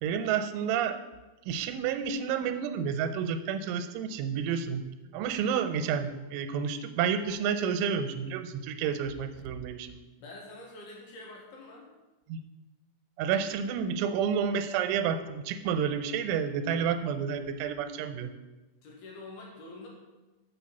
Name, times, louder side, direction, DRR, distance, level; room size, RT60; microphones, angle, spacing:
voice 1, 0.0-1.0 1.5-4.9 5.1-10.0 12.3-12.4 13.2-18.3, right 7 dB, 90° right, 9 dB, 3.1 m, -30 dB
voice 2, 10.2-11.9 18.8-19.9, left 2 dB, 65° left, -2 dB, 3.2 m, -46 dB
7.1 x 6.3 x 7.1 m, 1.1 s
omnidirectional pair, 5.4 m